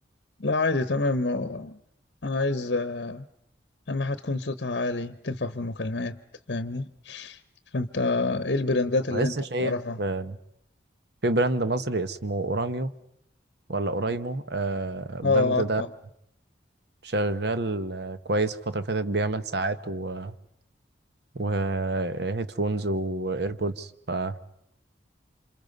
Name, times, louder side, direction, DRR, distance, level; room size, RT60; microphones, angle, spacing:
voice 1, 0.4-1.8 2.2-3.2 3.9-6.2 6.5-7.4 7.7-10.0 15.2-15.9, left 3 dB, 60° left, 12 dB, 0.9 m, -27 dB
voice 2, 9.1-10.4 11.2-12.9 13.7-15.8 17.0-20.3 21.3-24.4, right 2 dB, 60° right, 12 dB, 1.1 m, -28 dB
28.5 x 26.5 x 5.4 m, 0.79 s
head